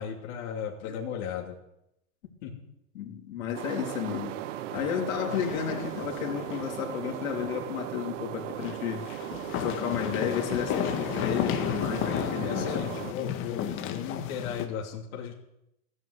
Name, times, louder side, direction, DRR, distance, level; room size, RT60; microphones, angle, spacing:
voice 1, 0.0-1.5 2.4-2.7 4.9-5.1 12.1-15.3, left 8 dB, 50° left, -2 dB, 2.9 m, -36 dB
voice 2, 2.9-4.4 4.7-9.0 9.6-12.8, left 9 dB, 70° left, 1 dB, 3.5 m, -32 dB
sound 1, 3.5-13.1, right 12 dB, 55° right, 1.0 m, -37 dB
sound 2, 5.3-6.8 7.1-7.2 8.6-14.7, left 9 dB, 30° left, 1.6 m, -33 dB
15.0 x 9.3 x 8.2 m, 0.83 s
supercardioid pair, 150°, 43 cm